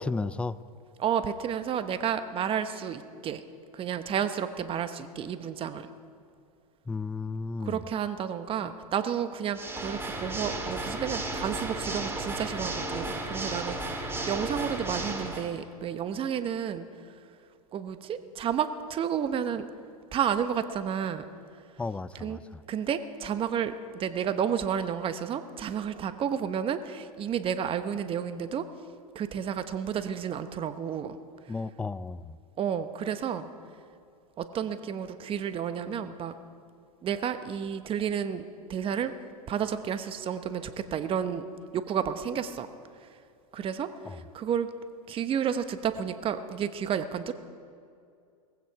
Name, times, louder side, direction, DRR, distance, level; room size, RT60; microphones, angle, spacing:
voice 1, 0.0-0.6 6.9-7.8 21.8-22.6 31.5-32.4 44.1-44.2, left 3 dB, 5° left, 17 dB, 0.3 m, -33 dB
voice 2, 1.0-3.4 3.7-5.9 7.6-16.9 17.7-19.7 20.1-21.3 22.2-22.4 22.7-28.6 29.1-31.2 32.6-33.5 34.4-36.3 37.0-39.1 39.5-41.5 41.7-42.7 43.5-44.7 45.1-47.3, right 8 dB, 30° right, 11 dB, 1.0 m, -31 dB
Water / Mechanisms, 9.5-15.5, right 2 dB, 10° right, 2.4 m, -34 dB
19.0 x 15.5 x 4.7 m, 2.3 s
hypercardioid pair, 105°, 19 cm